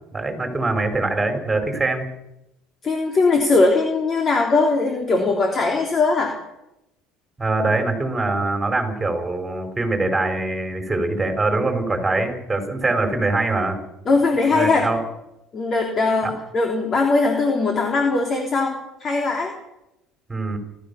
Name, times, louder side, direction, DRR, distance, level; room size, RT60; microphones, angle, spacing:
voice 1, 0.1-2.1 7.4-13.8 14.5-15.0 16.2-16.3 20.3-20.6, right 2 dB, 10° right, 5 dB, 4.7 m, -23 dB
voice 2, 2.8-6.3 14.1-14.8 15.5-19.5, left 3 dB, 30° left, 2 dB, 3.3 m, -20 dB
29.5 x 13.5 x 7.0 m, 0.89 s
cardioid pair, 125°, 0 cm